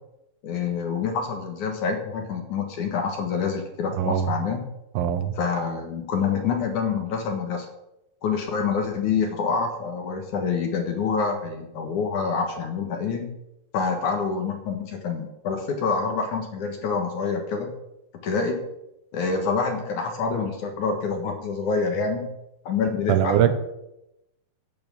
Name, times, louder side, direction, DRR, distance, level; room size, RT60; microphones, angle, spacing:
voice 1, 0.4-4.6 5.4-7.7 8.2-13.3 13.7-17.7 18.2-18.6 19.1-22.3 22.7-23.5, left 5 dB, 60° left, 4 dB, 2.7 m, -26 dB
voice 2, 4.0-4.3 5.0-5.4 23.1-23.5, right 10 dB, 75° right, 10 dB, 2.6 m, -21 dB
11.0 x 8.8 x 7.0 m, 0.87 s
omnidirectional pair, 4.4 m